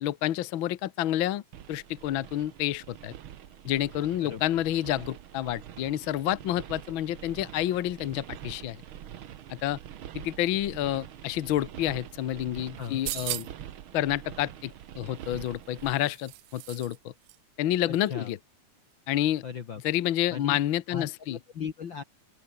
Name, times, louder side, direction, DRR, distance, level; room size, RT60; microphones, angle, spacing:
voice 1, 0.0-1.4 1.7-3.1 3.6-8.8 9.5-9.8 10.1-13.5 13.9-17.1 17.6-18.4 19.1-19.4 19.8-21.4, left 13 dB, 75° left, 1.1 m, -29 dB
sound 1, 1.5-15.9, right 10 dB, 60° right, 1.5 m, -45 dB
sound 2, 12.8-13.7 15.2-17.0 17.3-17.4, right 17 dB, 80° right, 2.2 m, -38 dB
voice 2, 17.9-18.3 19.4-19.8 20.3-20.6 20.9-22.0, left 7 dB, 50° left, 1.7 m, -37 dB
open air
omnidirectional pair, 3.6 m